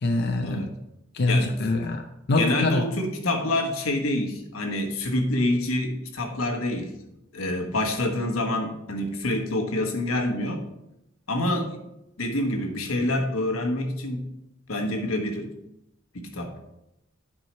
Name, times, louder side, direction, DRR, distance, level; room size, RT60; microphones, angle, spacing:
voice 1, 0.0-0.7 1.1-2.9, left 2 dB, 55° left, 4 dB, 0.6 m, -24 dB
voice 2, 2.4-6.9 7.3-10.6 11.3-11.8 12.2-14.3 14.7-15.5 16.1-16.5, left 1 dB, 90° left, 4 dB, 1.2 m, -27 dB
9.1 x 4.7 x 4.4 m, 0.87 s
head